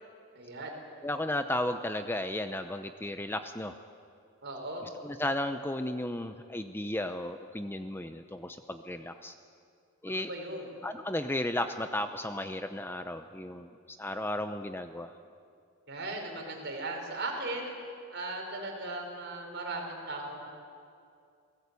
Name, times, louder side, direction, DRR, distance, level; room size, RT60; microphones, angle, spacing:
voice 1, 0.3-0.8 4.4-4.8 10.1-10.6 15.9-17.7 18.1-20.5, right 2 dB, 50° right, 1 dB, 5.1 m, -37 dB
voice 2, 1.0-3.8 5.0-9.3 10.0-10.3 10.8-15.1, left 1 dB, 10° left, 8 dB, 0.6 m, -34 dB
29.0 x 18.0 x 8.4 m, 2.4 s
head